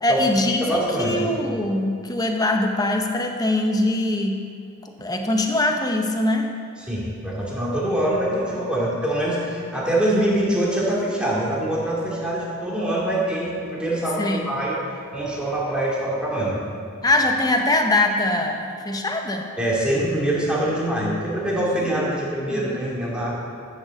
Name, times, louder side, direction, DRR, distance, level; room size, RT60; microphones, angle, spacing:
voice 1, 0.0-4.4 4.8-6.5 14.2-14.5 17.0-19.5 21.8-22.6, left 1 dB, 15° left, 3 dB, 0.9 m, -23 dB
voice 2, 0.6-1.3 6.9-14.8 15.1-16.6 19.6-23.4, right 1 dB, 5° right, -6 dB, 2.5 m, -24 dB
12.5 x 6.8 x 7.2 m, 2.4 s
head